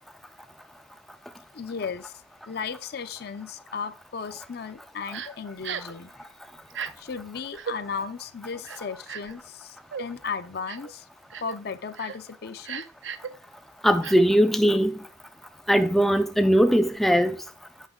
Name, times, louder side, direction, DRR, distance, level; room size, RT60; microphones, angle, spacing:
voice 1, 1.5-2.2 2.5-6.1 7.0-11.1 11.4-12.8, left 5 dB, 55° left, 0.5 m, -35 dB
Crying sobbing, 5.1-5.3 5.6-6.0 6.7-6.9 7.5-7.8 8.6-9.4 9.9-10.1 10.7-10.9 11.3-11.6 11.9-12.2 12.6-13.3 14.0-14.2, right 7 dB, 80° right, 0.6 m, -35 dB
voice 2, 13.8-14.9 15.7-17.4, equal, ahead, 0.3 m, -20 dB
8.2 x 5.7 x 3.7 m
head